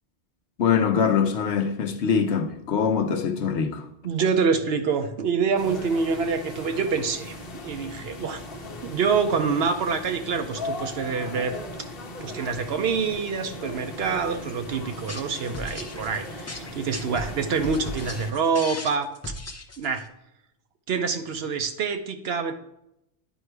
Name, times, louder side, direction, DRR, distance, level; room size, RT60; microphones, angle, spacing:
voice 1, 0.6-3.9, left 6 dB, 85° left, 1.1 m, -23 dB
voice 2, 4.0-7.4 7.6-8.4 8.8-11.6 12.2-19.1 19.8-20.0 20.9-22.6, right 5 dB, 70° right, 0.9 m, -26 dB
sound 1, 5.6-18.3, left 2 dB, 60° left, 1.1 m, -38 dB
sound 2, 14.9-20.1, left 2 dB, 20° left, 0.4 m, -37 dB
10.0 x 4.6 x 3.3 m
omnidirectional pair, 1.1 m